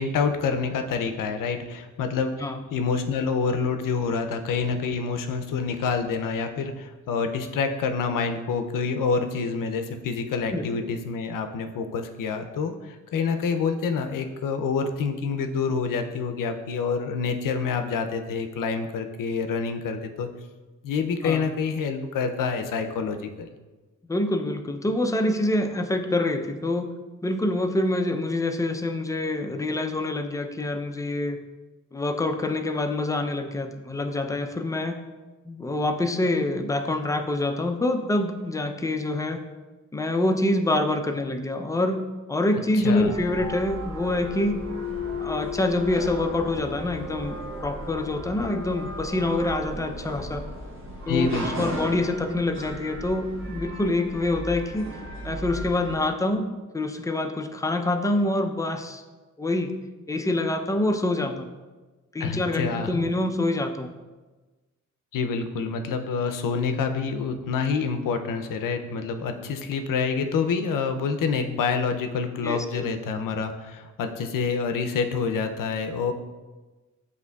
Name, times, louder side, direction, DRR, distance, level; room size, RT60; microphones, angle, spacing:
voice 1, 0.0-20.3 20.8-23.5 42.8-43.1 51.1-51.7 62.2-63.1 65.1-76.1, left 5 dB, 85° left, 7 dB, 0.5 m, -27 dB
voice 2, 24.1-26.9 27.2-31.4 31.9-35.0 35.5-39.4 39.9-42.0 42.3-44.6 45.2-50.4 51.1-54.9 55.2-56.5 56.7-59.0 59.4-59.7 60.1-61.5 62.1-63.9 72.4-72.8, left 2 dB, 10° left, 5 dB, 0.4 m, -26 dB
sound 1, 43.0-56.0, left 1 dB, 40° right, 1.1 m, -35 dB
8.0 x 2.7 x 2.3 m, 1.2 s
cardioid pair, 75°, 32 cm